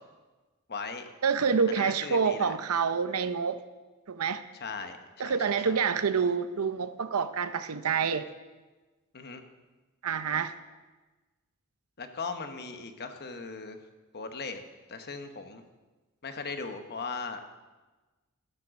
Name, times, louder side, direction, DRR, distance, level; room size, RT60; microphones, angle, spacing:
voice 1, 0.7-1.1 1.7-2.5 4.5-5.0 5.2-5.8 9.1-9.4 12.0-13.8 14.1-14.6 14.9-15.6 16.2-17.6, left 4 dB, 50° left, 7 dB, 1.0 m, -38 dB
voice 2, 1.2-3.6 4.1-4.4 5.2-8.2 10.0-10.5, right 6 dB, 75° right, 12 dB, 0.6 m, -27 dB
14.0 x 7.5 x 6.3 m, 1.2 s
head